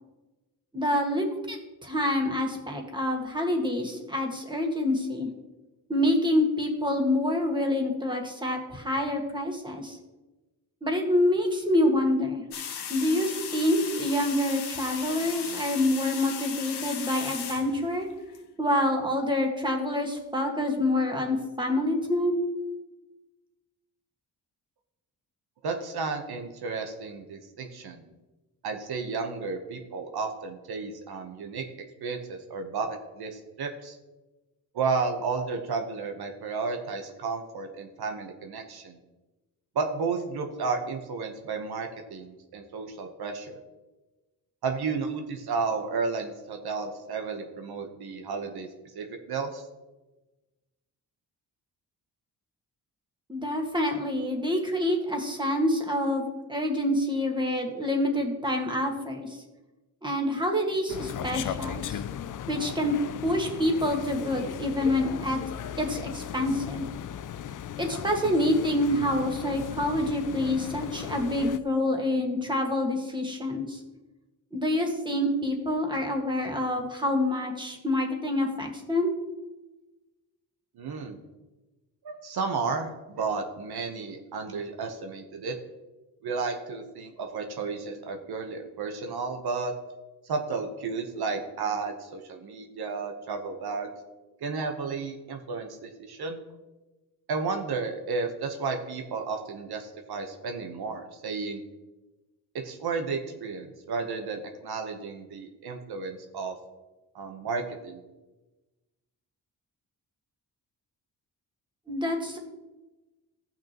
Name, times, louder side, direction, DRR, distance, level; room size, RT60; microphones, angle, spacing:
voice 1, 0.7-1.6 1.8-5.3 5.9-10.0 10.8-12.4 12.9-18.1 18.6-22.4 53.3-59.4 60.0-62.0 62.5-62.9 63.2-65.4 65.8-66.9 67.8-73.8 74.5-79.1 111.9-112.4, left 1 dB, 10° right, 2 dB, 1.7 m, -27 dB
sound 1, 12.5-18.4, left 7 dB, 85° left, 1.1 m, -37 dB
voice 2, 25.6-28.0 28.6-31.6 32.0-32.9 33.2-34.0 34.7-39.0 39.7-43.6 44.6-48.7 48.9-49.6 80.8-81.2 82.0-85.5 86.2-89.7 90.2-93.9 94.4-96.4 97.3-101.6 102.5-106.5 107.1-108.0, right 4 dB, 75° right, 4 dB, 1.1 m, -32 dB
sound 2, 60.9-71.6, left 9 dB, 55° left, 0.5 m, -37 dB
15.5 x 5.9 x 3.0 m, 1.1 s
cardioid pair, 95°, 38 cm